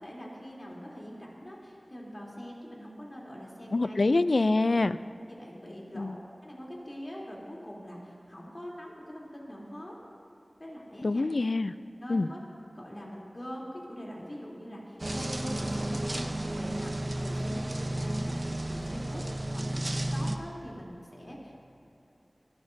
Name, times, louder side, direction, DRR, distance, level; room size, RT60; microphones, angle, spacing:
voice 1, 0.0-4.0 5.3-6.2 6.4-9.9 10.6-11.3 12.0-19.2 19.5-21.5, equal, 40° left, -4 dB, 3.3 m, -43 dB
voice 2, 3.7-5.0 5.9-6.2 11.0-11.7 12.1-12.3, left 2 dB, 75° left, 13 dB, 0.3 m, -25 dB
sound 1, 15.0-20.4, right 1 dB, 50° right, 0.8 m, -32 dB
21.0 x 14.0 x 2.7 m, 2.8 s
wide cardioid pair, 60°, 0 cm